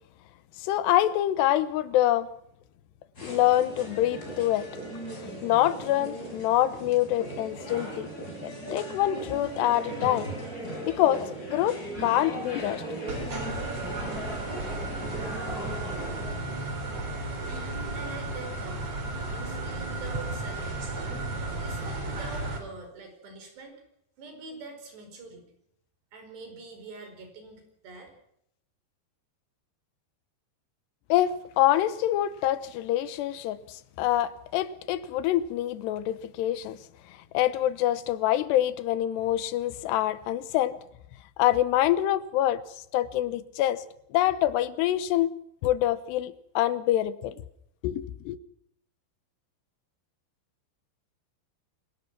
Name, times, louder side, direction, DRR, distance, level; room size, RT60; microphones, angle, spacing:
voice 1, 0.6-2.3 3.2-4.7 5.4-8.1 8.4-10.3 10.8-12.8 31.1-36.8 37.3-40.8 41.4-42.6 42.9-43.8 44.1-45.3 45.6-47.3 47.8-48.4, left 13 dB, 80° left, 3.0 m, -25 dB
sound 1, 3.1-16.3, right 1 dB, 20° left, 6.7 m, -38 dB
sound 2, 13.1-22.6, right 2 dB, 40° right, 4.5 m, -34 dB
voice 2, 17.9-18.9 19.2-20.9 21.6-23.8 24.2-25.5 26.1-28.1, right 3 dB, 75° right, 7.1 m, -44 dB
27.0 x 17.5 x 6.0 m
omnidirectional pair, 4.9 m